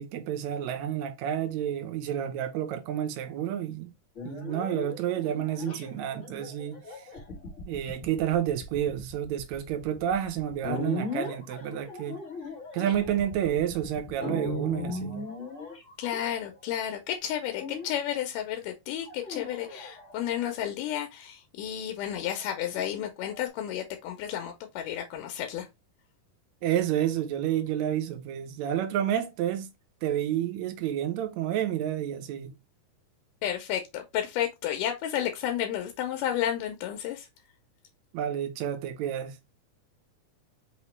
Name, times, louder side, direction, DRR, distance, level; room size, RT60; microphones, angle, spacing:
voice 1, 0.0-3.9 4.2-7.1 7.7-12.2 12.7-15.2 26.6-29.7 30.0-32.5 38.1-39.4, right 10 dB, 75° right, 1.9 m, -30 dB
sound 1, 4.2-16.8 17.6-18.2 19.0-20.5 22.1-23.5, left 3 dB, 50° left, 0.8 m, -39 dB
voice 2, 16.0-25.7 33.4-37.3, left 10 dB, 90° left, 2.2 m, -32 dB
5.6 x 2.9 x 3.0 m
omnidirectional pair, 3.7 m